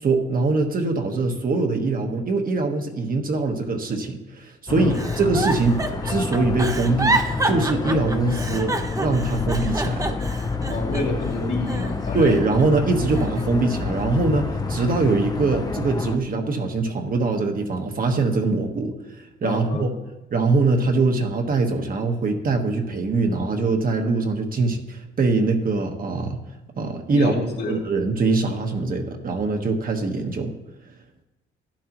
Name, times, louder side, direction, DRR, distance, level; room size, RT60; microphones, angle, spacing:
voice 1, 0.0-5.8 6.0-10.2 12.1-19.9 20.3-26.4 26.8-27.4 27.7-30.5, right 3 dB, 45° right, 4 dB, 1.3 m, -23 dB
sound 1, 4.7-16.2, left 4 dB, 20° left, 0.8 m, -28 dB
Giggle, 4.9-11.3 11.7-12.6 13.1-14.2 14.7-15.1, right 2 dB, 15° right, 0.9 m, -28 dB
voice 2, 10.7-12.3 19.4-19.9 27.1-27.9, left 2 dB, 55° left, 0 dB, 2.6 m, -28 dB
12.0 x 10.0 x 3.0 m, 0.98 s
cardioid pair, 90°, 20 cm